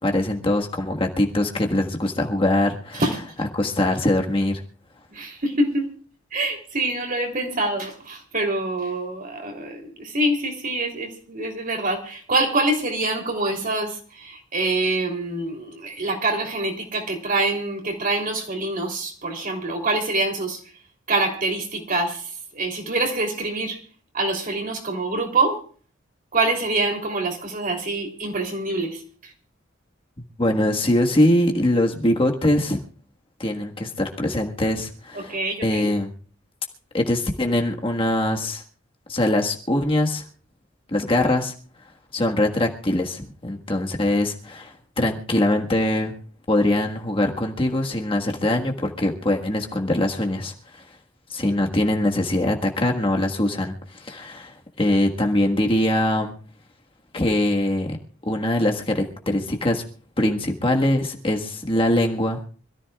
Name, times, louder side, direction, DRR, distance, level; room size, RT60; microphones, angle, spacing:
voice 1, 0.0-3.0 3.5-4.6 30.4-32.8 33.4-36.1 36.9-38.6 39.1-40.2 40.9-41.5 42.1-46.1 46.5-50.8 51.3-56.3 57.1-58.0 58.2-59.8 60.2-62.4, left 1 dB, 30° left, 2 dB, 1.5 m, -22 dB
voice 2, 5.1-5.9 6.3-20.6 21.1-23.8 24.1-25.6 26.3-29.0 35.1-35.9, right 2 dB, 45° right, 2 dB, 3.2 m, -25 dB
26.0 x 14.0 x 2.4 m, 0.43 s
head